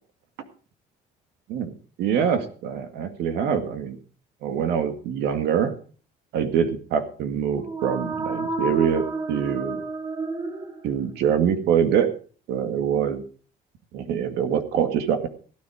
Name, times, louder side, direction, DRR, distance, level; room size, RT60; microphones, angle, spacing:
voice 1, 1.5-4.0 4.4-5.7 6.3-9.8 10.8-12.1 12.5-13.2 13.9-15.3, right 8 dB, 85° right, 7 dB, 2.1 m, -24 dB
sound 1, 7.5-11.3, right 3 dB, 35° right, 2.3 m, -31 dB
16.5 x 10.0 x 5.0 m, 0.41 s
cardioid pair, 110°, 17 cm